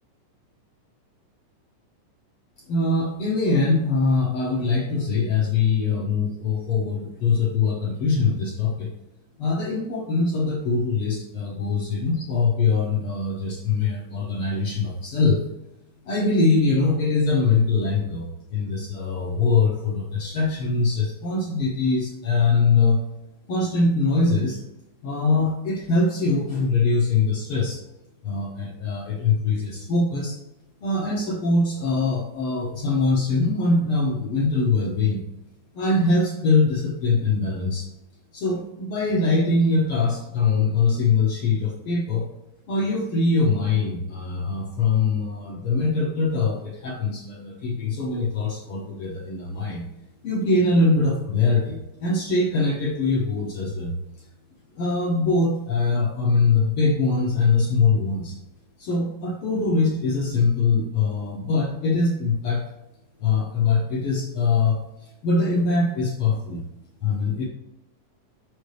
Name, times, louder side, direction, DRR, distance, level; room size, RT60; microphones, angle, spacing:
voice 1, 2.7-8.9 9.4-15.4 16.0-23.0 23.5-24.6 25.0-27.8 28.2-30.4 30.8-35.2 35.7-37.9 38.3-42.3 42.7-49.8 50.2-53.9 54.7-58.3 58.8-62.7 63.2-66.6 67.0-67.5, left 3 dB, 85° left, -1 dB, 1.2 m, -22 dB
6.6 x 5.5 x 3.2 m, 0.90 s
omnidirectional pair, 3.8 m